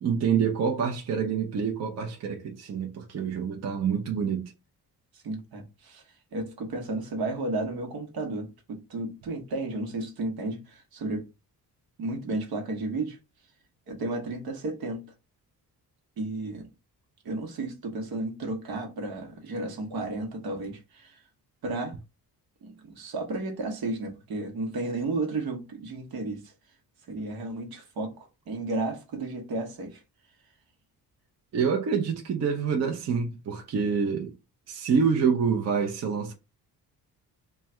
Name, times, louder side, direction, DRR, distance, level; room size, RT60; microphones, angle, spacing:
voice 1, 0.0-4.5 31.5-34.3 34.7-36.3, right 6 dB, 45° right, 0.7 m, -27 dB
voice 2, 5.1-6.0 6.3-11.2 12.0-13.2 13.9-15.0 16.2-16.7 17.2-21.2 21.6-21.9 22.6-26.5 27.1-30.0, right 2 dB, 70° right, 1.2 m, -33 dB
3.1 x 2.3 x 4.3 m
wide cardioid pair, 155°, 38 cm